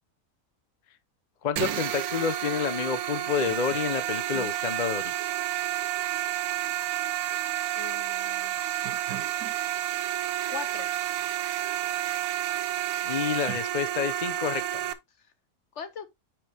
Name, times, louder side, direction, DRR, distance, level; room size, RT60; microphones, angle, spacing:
voice 1, 1.4-5.1 13.0-14.9, left 6 dB, 40° left, 0.8 m, -29 dB
sound 1, 1.6-14.9, right 12 dB, 85° right, 1.2 m, -30 dB
voice 2, 7.7-8.6 10.5-10.9 15.2-15.3 15.7-16.1, left 6 dB, 55° left, 1.1 m, -40 dB
9.3 x 4.5 x 3.4 m
omnidirectional pair, 1.5 m